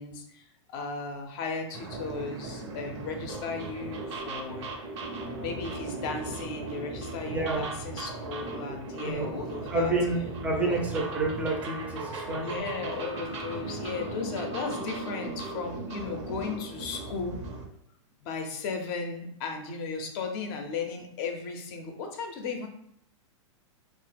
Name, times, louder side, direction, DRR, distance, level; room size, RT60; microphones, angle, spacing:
voice 1, 0.0-4.7 5.4-9.9 10.6-10.8 12.4-17.4 18.2-22.7, left 4 dB, 45° left, 4 dB, 0.6 m, -36 dB
sound 1, 1.7-17.7, right 3 dB, 60° right, 0.7 m, -37 dB
voice 2, 7.3-7.6 9.0-9.3 9.7-12.4, right 2 dB, 10° right, -1 dB, 0.5 m, -29 dB
2.8 x 2.0 x 3.3 m, 0.73 s
hypercardioid pair, 125°, 16 cm